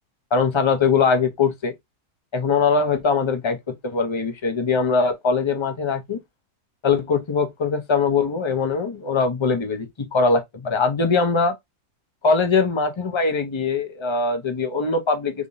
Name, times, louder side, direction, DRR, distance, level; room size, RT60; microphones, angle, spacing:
voice 1, 0.3-1.7 2.3-3.6 3.8-6.2 6.8-11.5 12.2-15.5, left 4 dB, 40° left, 0.4 m, -21 dB
3.6 x 3.4 x 2.6 m
omnidirectional pair, 1.7 m